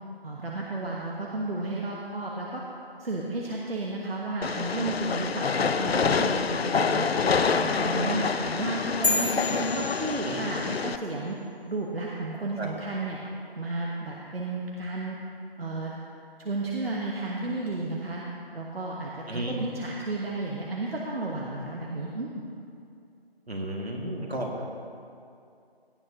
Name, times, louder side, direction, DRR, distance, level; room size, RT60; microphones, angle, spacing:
voice 1, 0.2-2.6 3.0-7.1 7.5-11.4 11.7-13.2 13.6-15.2 15.6-15.9 16.4-18.2 18.5-22.3, right 2 dB, 70° right, -3 dB, 1.4 m, -32 dB
Train, 4.4-11.0, left 5 dB, 75° left, 0.5 m, -27 dB
sound 1, 9.0-10.8, left 2 dB, 55° left, 1.2 m, -30 dB
voice 2, 23.5-24.7, right 1 dB, 85° right, -1 dB, 2.2 m, -33 dB
17.5 x 9.5 x 3.0 m, 2.5 s
figure-of-eight pair, 165°, 31 cm